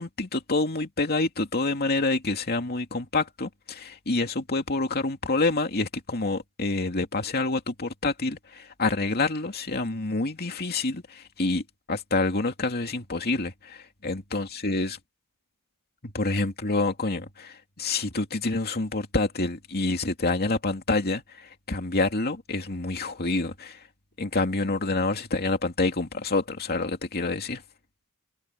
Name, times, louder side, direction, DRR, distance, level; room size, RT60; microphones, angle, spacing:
voice 1, 0.0-11.6 11.9-15.0 16.0-23.8 24.2-27.6, left 3 dB, 45° left, 2.5 m, -27 dB
head